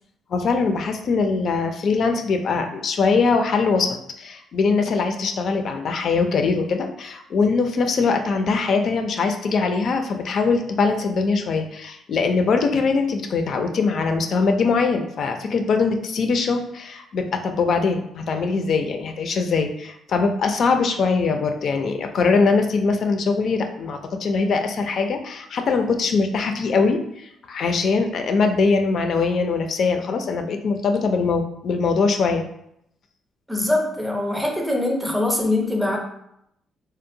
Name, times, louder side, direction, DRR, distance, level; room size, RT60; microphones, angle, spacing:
voice 1, 0.3-3.9 4.2-32.5, left 4 dB, 60° left, 5 dB, 0.4 m, -22 dB
voice 2, 33.5-36.0, left 1 dB, 5° right, 1 dB, 0.6 m, -23 dB
2.8 x 2.0 x 2.6 m, 0.76 s
cardioid pair, 90°, 0 cm